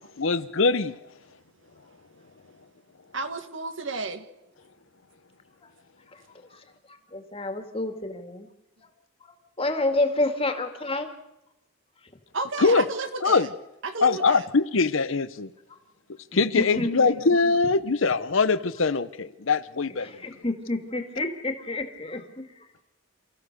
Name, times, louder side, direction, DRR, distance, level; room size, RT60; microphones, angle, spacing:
voice 1, 0.2-0.9 12.6-12.8 13.2-13.5 14.0-15.5 16.3-20.1, left 4 dB, 65° left, 0.8 m, -22 dB
voice 2, 3.1-4.3 12.3-13.5 13.8-14.5, right 3 dB, 65° right, 1.9 m, -32 dB
voice 3, 6.5-8.5 8.8-8.9 9.2-11.1 15.7-15.8 16.3-17.1 17.4-17.5 20.0-22.7, left 2 dB, 25° left, 2.2 m, -30 dB
28.5 x 15.0 x 6.7 m
head